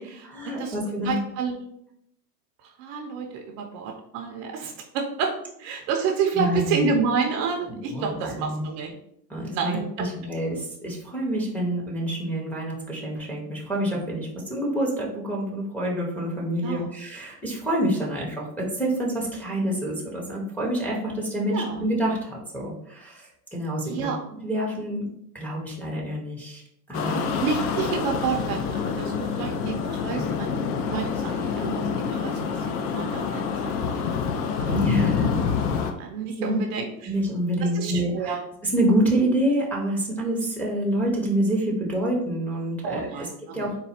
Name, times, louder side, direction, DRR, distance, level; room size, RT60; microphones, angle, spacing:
voice 1, 0.3-1.2 6.3-7.0 7.9-8.6 9.3-24.1 24.4-26.6 26.9-27.3 30.2-30.6 34.7-35.4 35.8-35.9 36.4-36.6 37.0-43.8, right 1 dB, 5° left, -4 dB, 0.6 m, -27 dB
voice 2, 1.1-1.6 2.8-8.9 9.5-10.1 16.6-16.9 21.5-21.7 23.9-24.2 27.4-30.5 30.9-32.4 32.7-33.4 34.6-34.9 36.0-37.1 37.6-38.4 42.8-43.7, right 5 dB, 40° right, 3 dB, 0.5 m, -29 dB
sound 1, 26.9-35.9, left 6 dB, 70° left, 0.7 m, -27 dB
4.0 x 2.2 x 4.2 m, 0.74 s
supercardioid pair, 135°, 47 cm